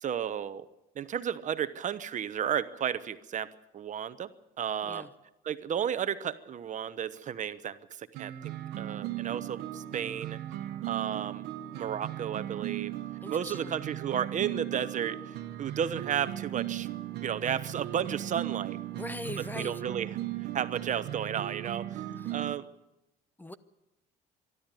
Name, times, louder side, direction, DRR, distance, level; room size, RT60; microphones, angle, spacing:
voice 1, 0.0-0.7 0.9-4.3 4.6-5.1 5.4-10.4 10.8-11.4 11.8-12.9 13.3-16.9 17.2-18.8 19.4-22.7, right 9 dB, 45° right, 13 dB, 1.1 m, -33 dB
sound 1, 8.1-22.5, right 13 dB, 80° right, 1.3 m, -37 dB
voice 2, 13.2-13.7 18.9-19.8 22.2-22.3 23.4-23.5, left 1 dB, 10° left, 14 dB, 0.9 m, -41 dB
24.0 x 12.5 x 9.2 m, 0.94 s
cardioid pair, 110°, 17 cm